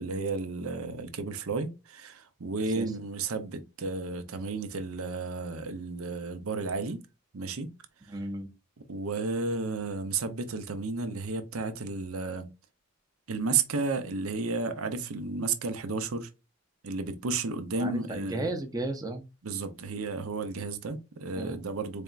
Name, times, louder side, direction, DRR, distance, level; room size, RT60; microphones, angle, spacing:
voice 1, 0.0-7.0 7.3-7.7 8.9-12.5 13.3-16.3 16.8-18.5 19.4-22.0, right 4 dB, 85° right, 0.7 m, -32 dB
voice 2, 8.1-8.5 17.8-19.2 21.3-21.6, right 2 dB, 15° right, 0.6 m, -34 dB
4.2 x 3.4 x 2.4 m
head